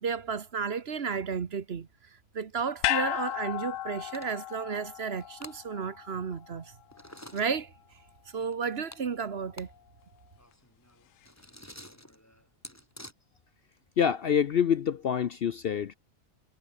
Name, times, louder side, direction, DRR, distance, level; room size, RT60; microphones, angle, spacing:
voice 1, 0.0-1.9 2.3-6.7 7.3-7.7 8.3-9.7, right 6 dB, 50° right, 1.3 m, -33 dB
sound 1, 2.8-7.2 7.5-7.6, left 13 dB, 75° left, 1.0 m, -34 dB
sound 2, 3.0-3.4 3.7-3.8 4.1-4.6 5.1-5.6 6.9-7.5 8.5-9.7 10.0-10.1 10.4-13.1, equal, 10° left, 7.8 m, -49 dB
voice 2, 14.0-15.9, left 8 dB, 55° left, 0.7 m, -26 dB
omnidirectional pair, 1.4 m